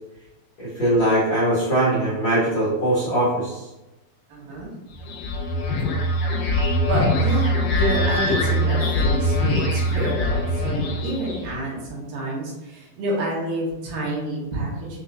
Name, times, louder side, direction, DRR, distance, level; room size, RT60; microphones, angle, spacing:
voice 1, 0.6-3.6, right 1 dB, 50° left, -10 dB, 1.7 m, -21 dB
voice 2, 4.3-4.7 6.9-15.0, right 1 dB, 75° right, -4 dB, 2.6 m, -28 dB
sound 1, 4.9-11.6, left 1 dB, 75° left, 2.3 m, -22 dB
6.1 x 2.4 x 2.3 m, 1.0 s
omnidirectional pair, 4.2 m